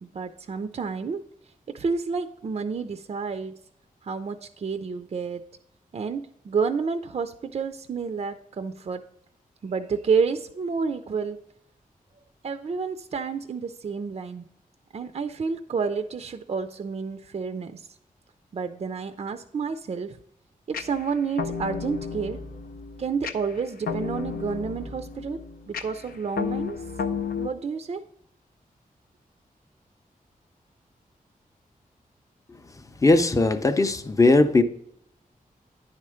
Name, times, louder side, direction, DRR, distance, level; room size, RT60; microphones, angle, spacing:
voice 1, 0.0-1.2 1.7-3.6 4.0-5.4 5.9-9.0 9.6-11.4 12.4-14.5 14.9-17.8 18.5-20.2 20.7-22.4 23.0-25.4 25.7-26.8 27.4-28.0, right 5 dB, 45° right, 9 dB, 0.4 m, -29 dB
sound 1, 20.7-27.5, left 6 dB, 90° left, 0.6 m, -33 dB
voice 2, 33.0-34.6, left 2 dB, 20° left, 9 dB, 0.6 m, -19 dB
9.9 x 4.3 x 4.8 m, 0.73 s
wide cardioid pair, 155°, 15 cm